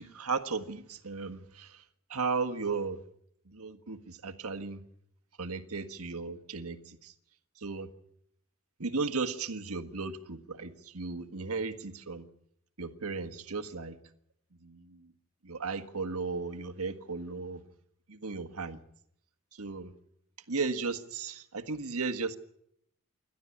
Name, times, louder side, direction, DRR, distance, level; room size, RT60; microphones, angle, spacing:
voice 1, 0.0-1.8 2.1-3.0 3.5-4.8 5.4-7.1 7.6-7.9 8.8-12.3 12.8-14.0 14.6-15.1 15.4-17.6 18.1-18.8 19.5-19.9 20.5-22.4, right 4 dB, 80° right, 9 dB, 1.7 m, -35 dB
28.0 x 12.0 x 9.8 m, 0.73 s
head